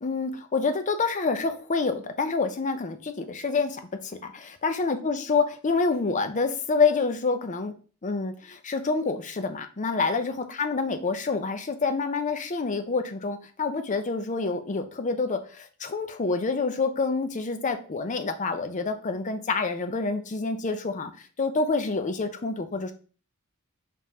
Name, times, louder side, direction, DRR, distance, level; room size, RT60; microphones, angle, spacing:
voice 1, 0.0-7.7 8.0-21.1 21.4-22.9, left 4 dB, 35° left, 8 dB, 0.5 m, -27 dB
5.1 x 3.4 x 2.8 m, 0.39 s
head